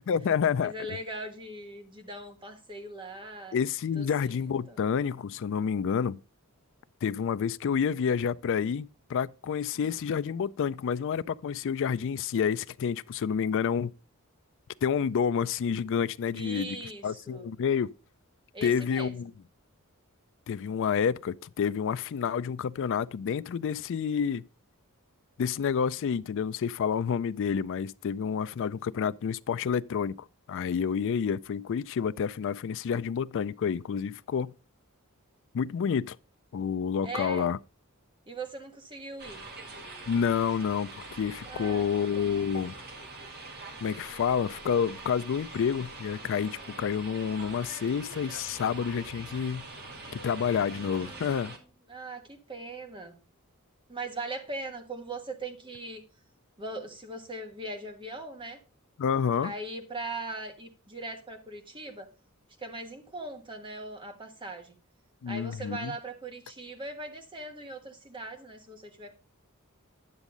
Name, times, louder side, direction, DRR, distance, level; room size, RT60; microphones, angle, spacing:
voice 1, 0.1-0.7 3.5-6.2 7.0-13.9 14.8-16.8 17.0-17.9 18.6-19.3 20.5-24.4 25.4-30.1 30.5-34.5 35.5-36.2 36.5-37.6 40.1-42.7 43.8-49.6 50.1-51.5 59.0-59.5 65.2-65.9, left 7 dB, 60° left, 0.4 m, -29 dB
voice 2, 0.6-3.6 3.9-4.4 4.7-4.8 9.7-9.9 16.3-17.5 18.5-19.3 37.0-37.5 38.3-39.5 41.4-41.9 42.1-42.7 50.7-51.5 51.9-53.1 53.9-56.0 56.6-58.6 59.4-62.1 62.6-64.8 65.3-69.1, right 2 dB, 25° right, 1.4 m, -40 dB
sound 1, 39.2-51.6, right 2 dB, 45° right, 1.9 m, -44 dB
9.9 x 7.2 x 3.8 m
head